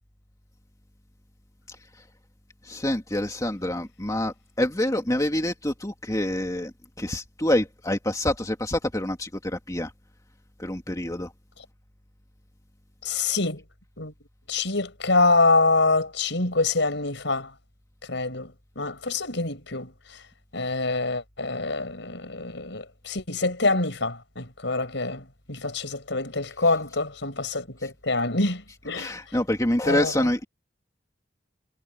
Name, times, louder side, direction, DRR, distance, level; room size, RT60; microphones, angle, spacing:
voice 1, 2.6-6.7 7.0-9.9 10.6-11.3 26.6-26.8 27.8-27.9 28.9-30.4, left 1 dB, 15° left, 2.5 m, -26 dB
voice 2, 13.0-13.6 14.0-14.1 14.5-17.5 18.1-19.9 20.5-29.1 29.8-30.3, left 3 dB, 65° left, 5.9 m, -25 dB
head